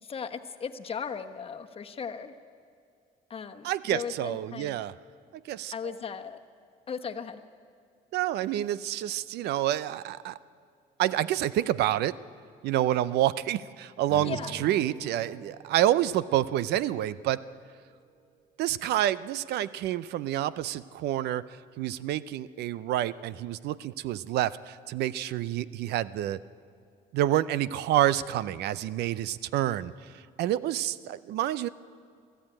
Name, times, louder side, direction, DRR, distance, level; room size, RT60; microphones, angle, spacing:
voice 1, 0.0-2.3 3.3-4.8 5.7-6.4 6.9-7.4 12.9-13.1 14.2-14.5, left 6 dB, 35° left, 6 dB, 1.2 m, -37 dB
voice 2, 3.6-4.9 5.4-5.7 8.1-10.4 11.0-12.2 12.6-17.4 18.6-21.5 21.8-26.4 27.1-31.7, right 13 dB, 75° right, 17 dB, 0.6 m, -28 dB
Strum, 14.0-18.5, right 2 dB, 20° right, 3.8 m, -48 dB
23.5 x 15.0 x 8.9 m, 2.3 s
cardioid pair, 110°, 17 cm